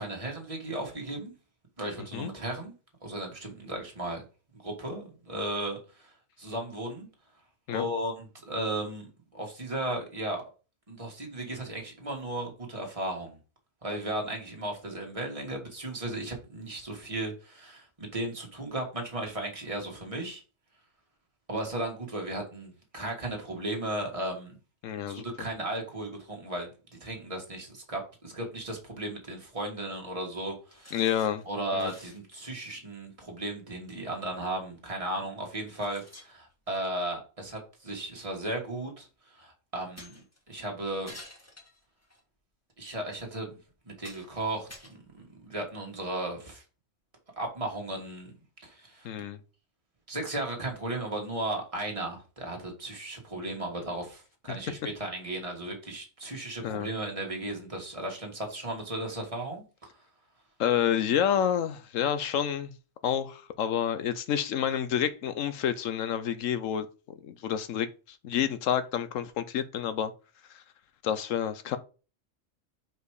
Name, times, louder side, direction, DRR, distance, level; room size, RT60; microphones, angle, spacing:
voice 1, 0.0-1.3 1.8-2.7 3.0-4.2 4.5-6.1 6.4-7.1 7.7-10.4 10.9-13.4 13.8-20.4 21.5-24.6 25.1-26.7 27.0-31.0 31.5-41.1 42.8-43.6 43.9-46.6 47.4-48.3 48.6-49.1 50.1-59.9, right 1 dB, 25° right, 1.8 m, -35 dB
voice 2, 24.8-25.3 30.9-31.4 31.7-31.9 49.0-49.4 56.6-56.9 60.6-62.7 63.0-66.9 67.2-70.1 70.5-70.6 71.0-71.8, left 9 dB, 80° left, 1.1 m, -29 dB
sound 1, 30.7-31.5 31.8-32.3 33.8-33.9 34.9-35.0 35.7-37.0 38.2-38.3 40.0-40.4 41.0-42.2 42.9-43.0 43.5-43.6 44.0-44.4 44.7-45.6, left 1 dB, 10° left, 1.5 m, -50 dB
5.1 x 4.6 x 4.8 m
omnidirectional pair, 1.3 m